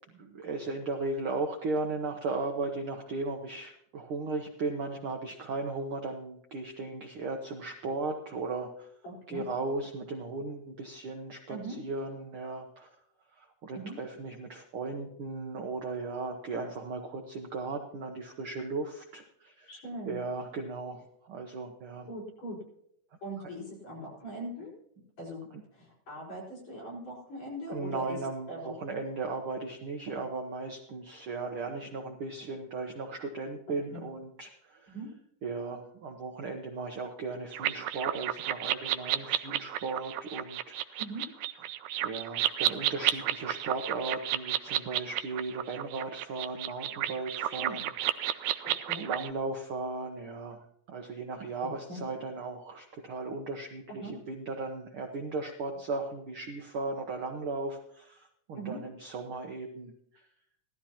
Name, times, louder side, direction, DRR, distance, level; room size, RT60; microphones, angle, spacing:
voice 1, 0.1-8.9 9.3-12.9 13.4-19.8 20.1-22.1 27.7-34.9 35.4-41.0 42.0-47.9 49.0-50.6 50.9-59.9, right 3 dB, 65° right, 3 dB, 1.4 m, -36 dB
voice 2, 9.0-9.4 11.5-11.8 13.7-14.0 19.7-20.2 22.1-22.6 23.2-24.7 25.2-28.2 28.5-28.7 33.9-34.0 34.9-35.1 41.0-41.3 47.6-47.8 48.6-49.0 51.9-52.0 54.0-54.1 58.6-58.8, right 1 dB, 60° left, -4 dB, 6.3 m, -41 dB
sound 1, 37.5-49.3, right 12 dB, 80° right, 1.5 m, -32 dB
17.0 x 13.0 x 2.9 m, 0.70 s
omnidirectional pair, 3.5 m